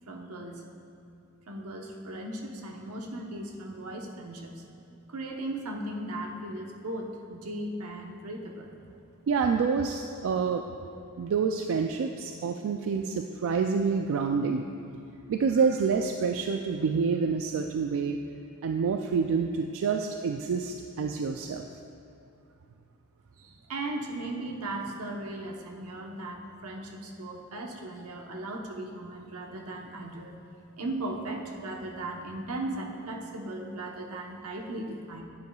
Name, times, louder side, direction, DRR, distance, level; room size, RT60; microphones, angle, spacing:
voice 1, 0.1-0.6 1.5-4.6 5.1-8.7 23.4-30.4 30.8-35.2, right 1 dB, 85° right, 1 dB, 1.0 m, -37 dB
voice 2, 9.3-10.7 11.2-14.7 15.3-18.2 18.6-21.7, right 5 dB, 65° right, 4 dB, 0.3 m, -27 dB
10.5 x 9.6 x 2.3 m, 2.6 s
head